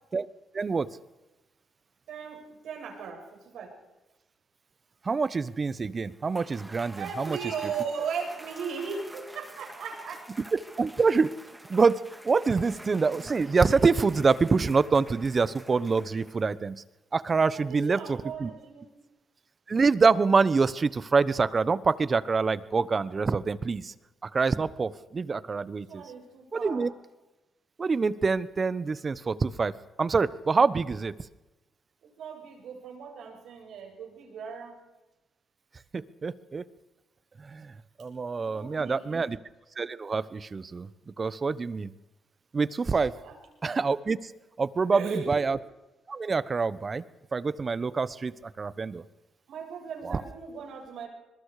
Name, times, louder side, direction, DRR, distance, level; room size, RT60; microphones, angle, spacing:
voice 1, 0.5-0.9 5.0-7.4 10.5-11.3 11.7-16.8 17.1-18.5 19.7-23.9 24.2-26.0 26.5-26.9 27.8-29.7 30.0-31.1 35.9-36.6 37.4-39.4 39.8-40.9 41.2-41.9 42.5-43.1 43.6-44.3 44.6-45.6 46.1-47.0 47.3-49.0 50.0-50.2, right 4 dB, 35° right, 17 dB, 1.1 m, -26 dB
voice 2, 2.1-3.8 7.0-10.3 17.5-18.9 25.9-26.9 32.0-34.8 38.4-39.2 43.1-43.4 44.9-45.4 49.5-51.1, right 6 dB, 75° right, 2 dB, 7.2 m, -37 dB
Cheering / Applause / Crowd, 6.1-16.6, right 1 dB, 5° right, 3.2 m, -47 dB
25.5 x 22.0 x 5.0 m, 1.0 s
cardioid pair, 90°, 0 cm